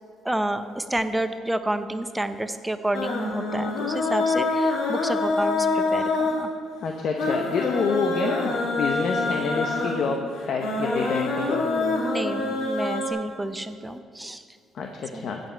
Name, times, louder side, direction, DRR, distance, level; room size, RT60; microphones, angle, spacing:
voice 1, 0.2-6.5 11.4-14.4 15.1-15.3, right 1 dB, 5° right, 9 dB, 0.6 m, -30 dB
sound 1, 2.9-13.1, left 3 dB, 80° left, 1.7 m, -26 dB
voice 2, 6.8-10.2 10.5-11.7 14.7-15.4, left 5 dB, 55° left, 3 dB, 0.8 m, -27 dB
15.0 x 7.8 x 4.5 m, 2.1 s
cardioid pair, 120°, 0 cm